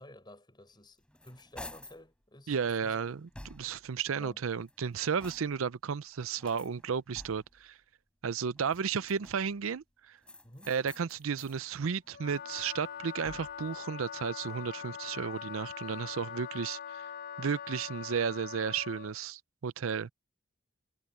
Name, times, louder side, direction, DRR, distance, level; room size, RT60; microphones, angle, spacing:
voice 1, 0.0-3.0 4.2-4.4 10.4-10.7, left 1 dB, 20° left, 7.1 m, -52 dB
sound 1, 0.7-2.1 2.6-3.9 4.5-5.7 6.4-7.7 8.6-9.6 10.2-11.6 12.0-13.7, left 1 dB, 5° left, 3.6 m, -52 dB
voice 2, 2.5-7.8 8.2-10.2 10.7-17.0 17.4-20.1, right 6 dB, 80° right, 0.5 m, -33 dB
Wind instrument woodwind instrument, 12.1-19.1, left 8 dB, 45° left, 0.4 m, -43 dB
head